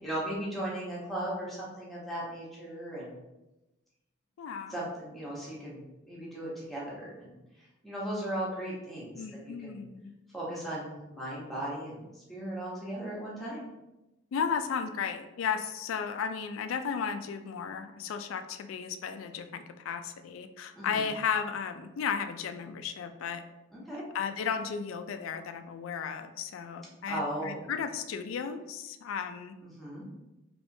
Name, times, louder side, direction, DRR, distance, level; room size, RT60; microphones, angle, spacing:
voice 1, 0.0-3.2 4.7-7.4 7.8-9.8 10.3-13.6 20.8-21.0 23.7-24.0 27.1-27.6 29.7-30.0, right 1 dB, ahead, -6 dB, 0.9 m, -37 dB
voice 2, 4.4-4.8 9.2-10.1 14.3-23.4 24.1-29.6, left 6 dB, 75° left, 9 dB, 0.3 m, -34 dB
3.4 x 3.0 x 2.6 m, 0.98 s
head